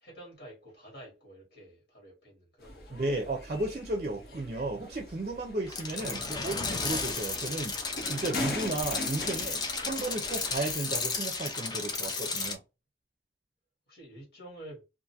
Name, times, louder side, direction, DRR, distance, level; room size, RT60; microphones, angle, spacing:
voice 1, 0.0-3.0 5.9-6.3 8.9-9.3 13.9-14.8, right 1 dB, 75° left, 1.4 m, -49 dB
sound 1, 2.6-10.7, left 2 dB, 55° left, 0.7 m, -41 dB
voice 2, 2.9-7.7 8.1-9.6 9.9-12.6, right 2 dB, 40° right, 0.4 m, -34 dB
sound 2, 5.7-12.5, left 4 dB, 25° left, 0.3 m, -34 dB
2.5 x 2.5 x 2.6 m
head